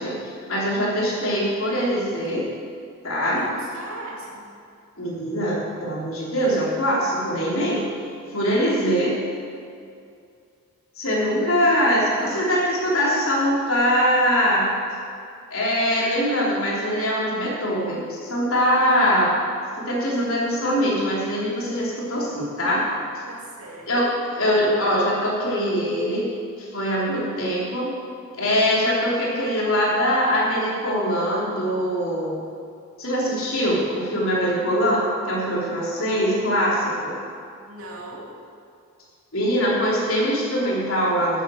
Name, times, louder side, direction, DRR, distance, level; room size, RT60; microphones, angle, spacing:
voice 1, 0.0-2.4 3.0-3.4 5.0-7.9 8.3-9.2 11.0-14.7 15.5-19.3 19.9-22.8 23.9-24.1 24.3-26.3 26.6-27.9 28.3-32.4 33.0-37.1 39.3-41.4, equal, 70° left, -5 dB, 3.6 m, -22 dB
voice 2, 3.4-4.5 12.1-12.6 23.3-24.2 37.7-38.3, right 2 dB, 80° right, -3 dB, 2.7 m, -39 dB
12.0 x 8.4 x 6.5 m, 2.4 s
head